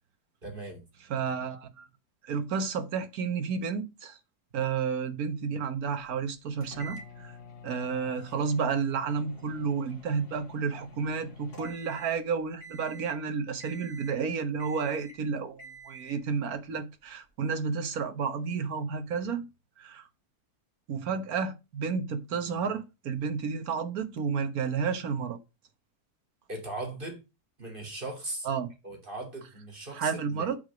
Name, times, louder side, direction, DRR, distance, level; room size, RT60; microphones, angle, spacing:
voice 1, 0.4-0.8 26.5-27.2 27.6-28.5 28.8-30.5, right 2 dB, 35° right, 3.2 m, -38 dB
voice 2, 1.1-1.9 2.2-4.2 4.5-7.3 7.6-19.4 19.8-20.0 20.9-25.4 28.4-28.7 29.9-30.6, right 6 dB, 70° right, 1.6 m, -31 dB
sound 1, 6.6-12.3 12.6-13.2 13.6-14.3 14.6-15.2 15.6-16.2, equal, 50° left, 2.7 m, -48 dB
8.0 x 4.9 x 6.2 m
omnidirectional pair, 1.6 m